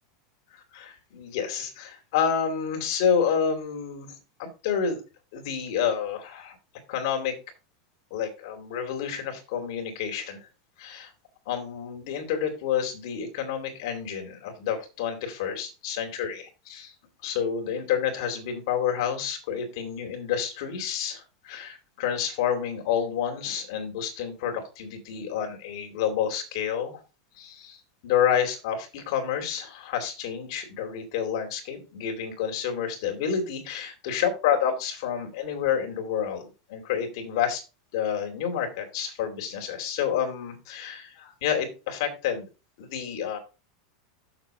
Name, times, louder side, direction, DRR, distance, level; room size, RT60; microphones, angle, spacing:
voice 1, 0.7-4.1 4.4-5.0 5.3-6.6 6.9-7.4 8.1-10.4 10.8-11.1 11.5-16.9 17.2-27.0 27.3-37.6 37.9-42.5 42.8-43.4, left 8 dB, 50° left, 4 dB, 2.6 m, -29 dB
7.1 x 6.6 x 4.5 m, 0.30 s
supercardioid pair, 175°, 3 cm